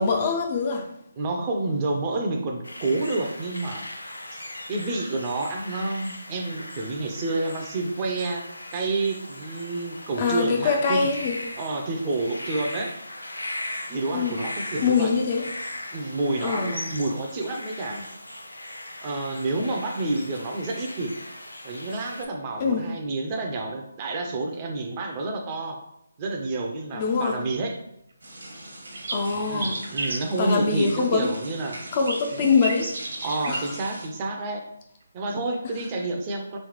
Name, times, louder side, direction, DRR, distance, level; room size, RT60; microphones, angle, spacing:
voice 1, 0.0-1.0 10.2-11.4 14.1-14.4 14.8-15.5 16.4-16.8 22.6-22.9 26.9-27.4 29.1-29.8 30.4-31.3 31.9-33.8, left 5 dB, 30° left, 0.5 m, -24 dB
voice 2, 1.2-3.9 4.3-4.4 4.7-8.5 8.7-11.0 11.6-13.0 13.9-15.1 15.9-18.1 19.0-21.2 21.6-25.8 26.2-27.8 29.5-31.8 32.3-32.5 33.2-34.6 35.1-36.6, right 2 dB, 25° right, 0.5 m, -29 dB
sound 1, 2.6-22.3, left 1 dB, 90° left, 0.6 m, -38 dB
sound 2, 28.2-34.1, right 1 dB, 75° right, 1.2 m, -43 dB
sound 3, 28.6-30.2 31.4-33.7 35.2-35.6, right 2 dB, 60° right, 0.9 m, -32 dB
3.4 x 3.2 x 3.0 m
figure-of-eight pair, 150°, 0 cm